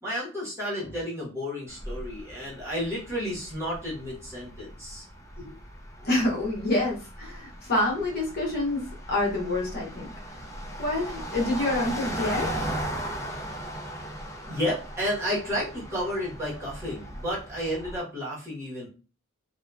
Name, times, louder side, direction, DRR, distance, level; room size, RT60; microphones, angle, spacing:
voice 1, 0.0-5.1 5.4-5.5 13.6-13.8 14.4-18.9, equal, 15° right, -8 dB, 1.1 m, -32 dB
sound 1, 1.7-18.0, right 1 dB, 15° left, 0.5 m, -38 dB
voice 2, 6.0-8.8 9.1-10.4 10.8-12.6, left 2 dB, 45° left, -3 dB, 1.0 m, -27 dB
2.7 x 2.3 x 2.3 m, 0.35 s
head